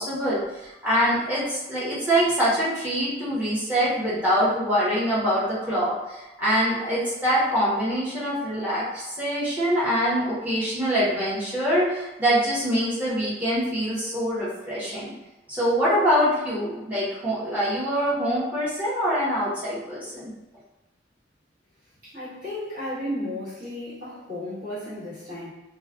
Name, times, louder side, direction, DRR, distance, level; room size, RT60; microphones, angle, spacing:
voice 1, 0.0-15.1 15.5-20.3, equal, 10° right, -10 dB, 0.9 m, -24 dB
voice 2, 22.0-25.5, left 1 dB, 45° right, -14 dB, 1.4 m, -34 dB
3.1 x 2.2 x 2.4 m, 1.0 s
head